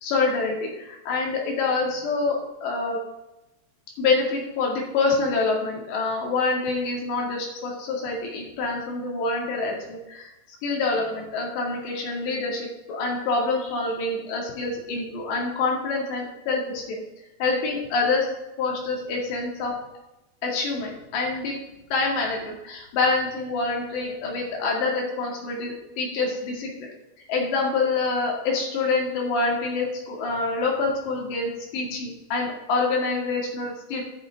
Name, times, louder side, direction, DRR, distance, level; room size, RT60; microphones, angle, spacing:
voice 1, 0.0-3.0 4.0-17.0 17.4-18.3 18.6-19.8 20.4-21.6 21.9-26.9 27.3-34.0, left 3 dB, 80° left, -1 dB, 4.6 m, -26 dB
12.0 x 10.5 x 3.6 m, 0.96 s
omnidirectional pair, 4.9 m